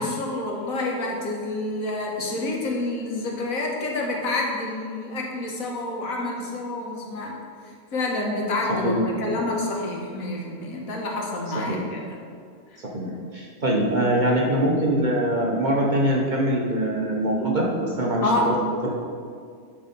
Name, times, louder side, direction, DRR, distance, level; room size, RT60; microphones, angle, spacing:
voice 1, 0.0-7.4 7.9-12.2 12.7-12.8 13.1-13.2 18.2-18.5, left 2 dB, 80° left, -1 dB, 1.6 m, -28 dB
voice 2, 8.7-9.0 9.3-9.4 11.5-11.8 12.8-13.1 13.3-18.5 18.8-18.9, right 1 dB, 40° right, -3 dB, 0.9 m, -23 dB
8.6 x 4.1 x 5.1 m, 2.1 s
omnidirectional pair, 1.4 m